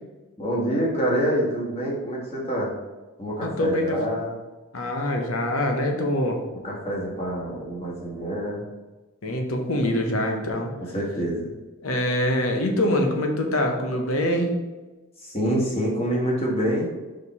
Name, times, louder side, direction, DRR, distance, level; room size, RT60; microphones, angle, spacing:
voice 1, 0.4-2.7 3.2-4.3 6.6-8.6 10.8-11.5 15.2-16.9, equal, 30° left, -4 dB, 1.5 m, -26 dB
voice 2, 3.4-4.0 4.7-6.4 9.2-10.7 11.8-14.6, left 1 dB, 90° left, 3 dB, 1.0 m, -24 dB
5.2 x 4.4 x 4.2 m, 1.2 s
head